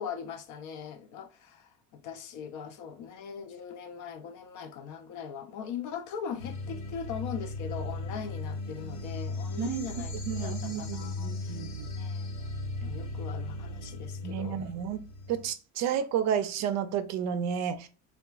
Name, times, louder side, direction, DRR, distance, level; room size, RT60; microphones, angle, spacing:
voice 1, 0.0-11.5 12.0-12.2 12.8-14.6, left 7 dB, 55° left, 0.5 m, -40 dB
sound 1, 6.4-15.5, left 2 dB, 80° left, 1.0 m, -37 dB
voice 2, 10.3-11.9 14.2-15.0 15.3-17.9, right 8 dB, 50° right, 0.4 m, -31 dB
3.6 x 2.3 x 2.3 m
cardioid pair, 130°, 36 cm